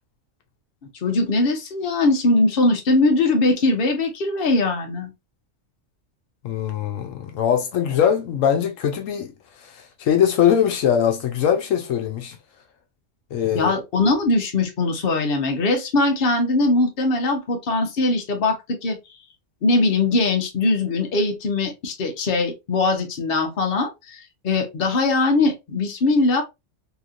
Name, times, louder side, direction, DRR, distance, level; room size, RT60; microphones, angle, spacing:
voice 1, 1.0-5.1 13.5-19.0 19.6-26.4, left 2 dB, 50° left, 1.0 m, -21 dB
voice 2, 6.4-12.4 13.3-13.7, left 9 dB, 80° left, 1.0 m, -21 dB
3.1 x 2.8 x 2.4 m
omnidirectional pair, 1.3 m